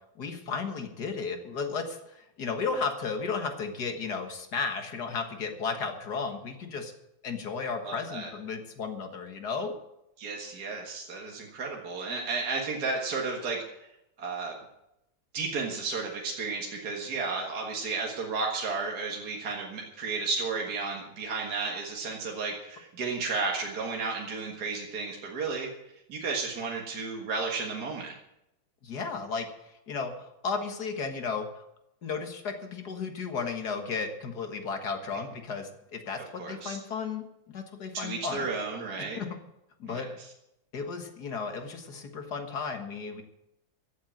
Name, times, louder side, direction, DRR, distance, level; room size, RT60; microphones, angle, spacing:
voice 1, 0.2-6.9 7.2-9.7 28.8-31.6 32.0-38.5 39.2-39.3 39.8-40.1 40.7-43.2, left 5 dB, 55° left, 5 dB, 2.1 m, -34 dB
voice 2, 7.8-8.3 10.2-13.9 14.2-14.5 15.3-25.7 26.1-28.1 36.4-36.8 37.9-39.2 39.8-40.0, right 4 dB, 55° right, -1 dB, 2.2 m, -33 dB
15.0 x 7.9 x 8.7 m, 0.85 s
omnidirectional pair, 2.1 m